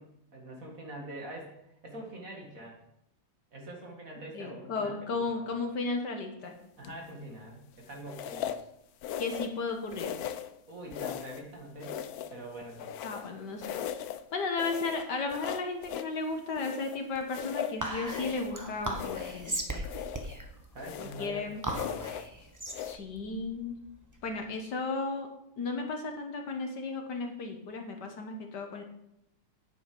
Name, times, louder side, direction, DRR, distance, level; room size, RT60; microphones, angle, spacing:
voice 1, 0.0-1.5 1.8-2.8 3.5-5.4 6.8-8.5 10.7-12.0 12.3-12.9 20.7-22.1, right 1 dB, 45° right, 0 dB, 2.2 m, -44 dB
voice 2, 4.3-6.5 9.2-10.1 13.0-13.8 14.3-19.8 21.0-21.6 22.8-23.7 24.2-25.3 25.6-28.8, left 3 dB, 60° left, 4 dB, 1.6 m, -34 dB
sound 1, 6.8-7.2 8.1-8.7 9.0-9.6 9.9-10.5 10.9-11.5 11.8-13.3 13.6-14.2 14.6-16.1 16.5-18.6 18.9-19.5 19.8-20.4 20.8-21.3 21.7-22.3 22.7-23.0, left 9 dB, 85° left, 0.8 m, -38 dB
Whispering, 17.8-24.5, right 1 dB, 20° right, 0.5 m, -38 dB
9.3 x 7.6 x 5.4 m, 0.79 s
omnidirectional pair, 2.2 m